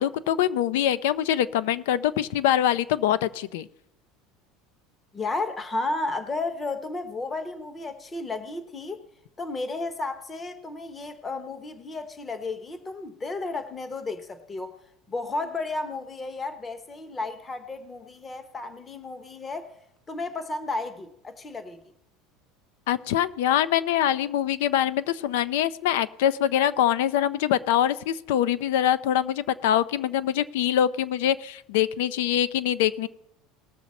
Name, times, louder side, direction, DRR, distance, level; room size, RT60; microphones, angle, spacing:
voice 1, 0.0-3.7 22.9-33.1, left 11 dB, 80° left, 16 dB, 0.5 m, -24 dB
voice 2, 5.1-9.0 9.4-19.8 20.1-21.8, left 3 dB, 15° left, 10 dB, 0.7 m, -33 dB
19.0 x 6.9 x 4.2 m, 0.75 s
cardioid pair, 175°, 0 cm